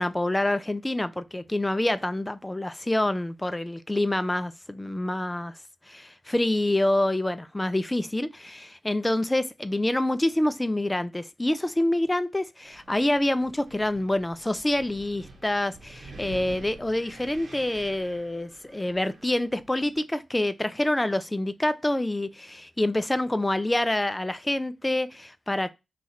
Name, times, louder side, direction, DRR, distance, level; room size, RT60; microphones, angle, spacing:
voice 1, 0.0-5.5 5.9-25.7, left 1 dB, 20° left, 0.4 m, -27 dB
Wind, 12.6-20.0, right 2 dB, 70° right, 1.1 m, -48 dB
2.9 x 2.4 x 4.2 m
supercardioid pair, 40°, 0 cm